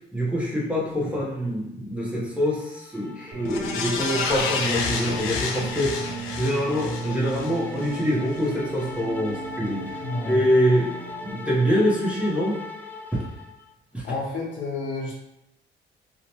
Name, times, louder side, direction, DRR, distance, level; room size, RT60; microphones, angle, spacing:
voice 1, 0.1-6.0 6.4-10.0 10.2-11.0 11.2-12.6 13.1-13.2 13.9-14.0, equal, 5° right, -6 dB, 0.9 m, -25 dB
sound 1, 2.4-13.7, left 4 dB, 10° left, 0.3 m, -40 dB
sound 2, 3.3-11.3, right 5 dB, 75° right, 0.5 m, -38 dB
sound 3, 3.5-8.0 8.4-8.5, left 5 dB, 85° left, 0.4 m, -30 dB
voice 2, 10.0-10.4 14.0-15.1, left 3 dB, 70° left, -2 dB, 0.8 m, -30 dB
2.8 x 2.2 x 2.9 m, 0.84 s
cardioid pair, 90°, 20 cm